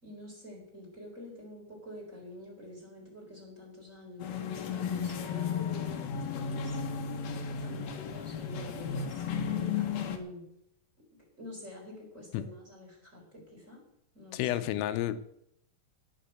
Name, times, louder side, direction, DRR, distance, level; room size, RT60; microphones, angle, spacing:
voice 1, 0.0-6.8 7.6-10.5 11.4-13.8 14.1-14.6, left 1 dB, 15° right, -2 dB, 4.1 m, -47 dB
sound 1, 4.2-10.2, left 6 dB, 65° left, 2.7 m, -34 dB
voice 2, 14.3-15.2, left 13 dB, 85° left, 11 dB, 3.4 m, -30 dB
17.5 x 7.1 x 7.8 m, 0.76 s
omnidirectional pair, 5.8 m